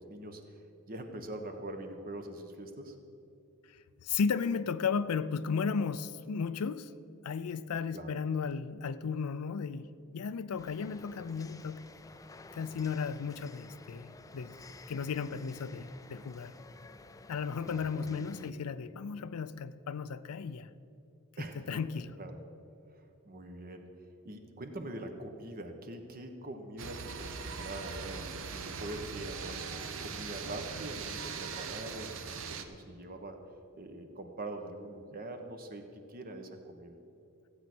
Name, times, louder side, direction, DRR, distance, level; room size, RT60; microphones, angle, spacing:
voice 1, 0.0-3.0 7.9-8.1 10.9-11.0 17.6-18.3 21.4-21.8 22.2-22.4 22.9-29.7 30.0-33.4 33.7-36.9, right 1 dB, 40° right, 1.2 m, -44 dB
voice 2, 4.0-6.9 7.2-11.9 12.5-14.5 14.9-16.5 17.3-20.7 21.4-22.2, left 5 dB, 75° left, 0.5 m, -35 dB
sound 1, 10.6-18.5, left 3 dB, 15° left, 0.4 m, -53 dB
sound 2, 26.8-32.6, right 5 dB, 65° right, 0.8 m, -40 dB
15.5 x 8.3 x 6.1 m
head